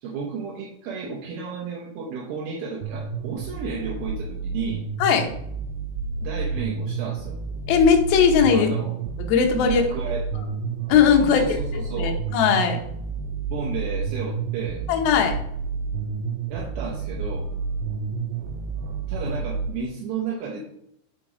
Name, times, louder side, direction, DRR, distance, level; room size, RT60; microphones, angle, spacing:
voice 1, 0.0-4.8 6.2-7.3 8.5-8.9 9.6-10.3 11.2-12.2 13.5-14.8 16.5-17.5 19.1-20.6, right 5 dB, 70° right, -3 dB, 2.4 m, -33 dB
sound 1, 2.8-19.7, right 5 dB, 85° right, 2.2 m, -30 dB
voice 2, 5.0-5.3 7.7-8.7 9.3-9.8 10.9-11.4 11.9-12.8 14.9-15.3, left 7 dB, 75° left, 3 dB, 2.3 m, -18 dB
6.9 x 4.6 x 4.9 m, 0.72 s
omnidirectional pair, 5.4 m